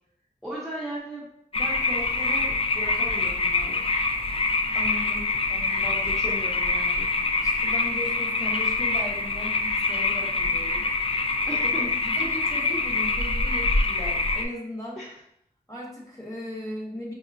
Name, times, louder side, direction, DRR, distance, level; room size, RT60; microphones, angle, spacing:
voice 1, 0.4-1.3 1.5-3.9 5.8-7.1 11.5-11.8 15.0-15.1, right 1 dB, ahead, -8 dB, 0.8 m, -37 dB
sound 1, 1.5-14.5, left 3 dB, 35° left, 0.4 m, -25 dB
voice 2, 4.7-6.0 7.4-10.9 11.6-15.0 15.7-17.1, left 1 dB, 20° left, -4 dB, 1.3 m, -37 dB
4.6 x 2.1 x 2.5 m, 0.73 s
wide cardioid pair, 45°, 17 cm